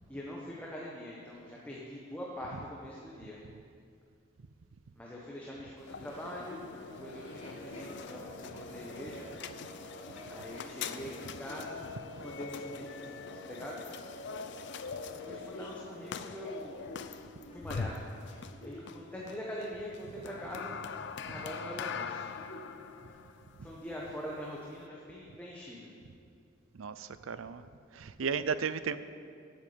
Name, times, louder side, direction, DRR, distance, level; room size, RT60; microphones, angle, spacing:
voice 1, 0.1-3.4 4.9-6.6 7.0-9.3 10.3-11.8 12.2-14.0 15.2-16.8 17.5-18.0 18.6-20.8 21.3-22.3 22.6-22.8 23.6-25.9, equal, 10° left, -5 dB, 1.2 m, -43 dB
sound 1, 5.8-24.9, left 5 dB, 60° left, 0.5 m, -43 dB
Chuckle chortle, 6.1-11.7 12.2-12.3 15.0-19.0 19.6-21.1 21.3-21.7 22.1-22.8 23.1-23.2 23.6-24.1 24.7-24.8, equal, 35° left, 3.3 m, -53 dB
sound 2, 6.7-16.9, right 2 dB, 55° right, 3.3 m, -51 dB
voice 2, 26.7-27.6 27.9-29.0, right 6 dB, 85° right, 13 dB, 0.5 m, -34 dB
8.4 x 8.1 x 8.6 m, 2.3 s
head